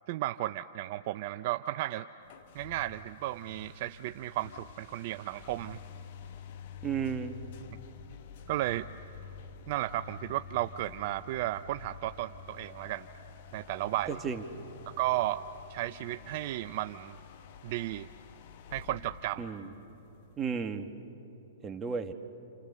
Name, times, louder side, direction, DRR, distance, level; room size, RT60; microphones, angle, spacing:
voice 1, 0.1-2.1 2.5-5.8 8.5-8.9 9.7-13.1 13.5-14.2 15.0-15.4 15.7-17.2 17.6-18.1 18.7-19.5, right 15 dB, 50° right, 10 dB, 0.5 m, -34 dB
sound 1, 2.2-20.7, left 6 dB, 55° left, 1.3 m, -49 dB
voice 2, 6.8-7.4 14.1-14.4 19.4-19.7 20.4-20.9 21.6-22.1, right 6 dB, 20° right, 6 dB, 1.7 m, -33 dB
29.0 x 28.0 x 6.8 m, 3.0 s
hypercardioid pair, 115°, 0 cm